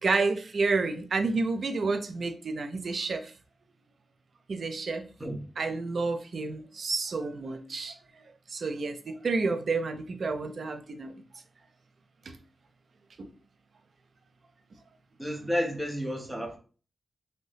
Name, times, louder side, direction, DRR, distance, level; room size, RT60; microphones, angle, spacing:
voice 1, 0.0-3.3 4.5-5.1 5.6-8.0 8.5-11.1 12.3-12.4 13.2-13.3, right 3 dB, 50° right, 0.4 m, -30 dB
voice 2, 15.2-16.6, equal, 10° right, 0.7 m, -31 dB
2.7 x 2.7 x 3.2 m
wide cardioid pair, 180°, 0 cm